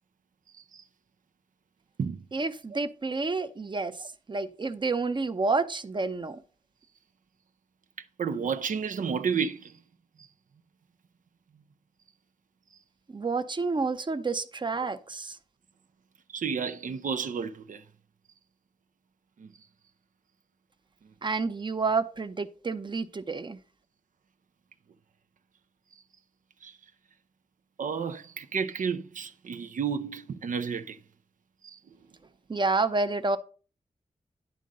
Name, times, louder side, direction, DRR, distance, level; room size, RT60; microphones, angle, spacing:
voice 1, 2.3-4.0 4.3-6.4 13.1-15.4 21.2-23.6 32.5-33.4, right 3 dB, 35° right, 0.7 m, -29 dB
voice 2, 8.2-9.8 10.2-10.3 16.3-17.8 19.4-19.5 26.6-26.8 27.8-31.0 31.6-31.8, right 6 dB, 80° right, 0.6 m, -32 dB
11.0 x 3.8 x 5.3 m
wide cardioid pair, 100°, 13 cm